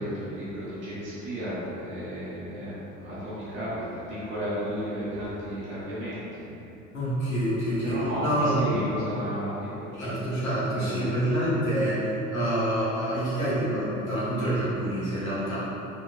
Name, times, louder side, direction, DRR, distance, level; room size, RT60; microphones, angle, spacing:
voice 1, 0.0-3.8 4.1-6.4 7.9-8.3 8.6-9.8 10.7-11.1, equal, 30° right, -11 dB, 0.8 m, -33 dB
voice 2, 6.9-8.9 9.9-15.6, right 1 dB, 80° left, -9 dB, 0.7 m, -27 dB
3.2 x 2.2 x 2.3 m, 2.9 s
figure-of-eight pair, 65°, 40 cm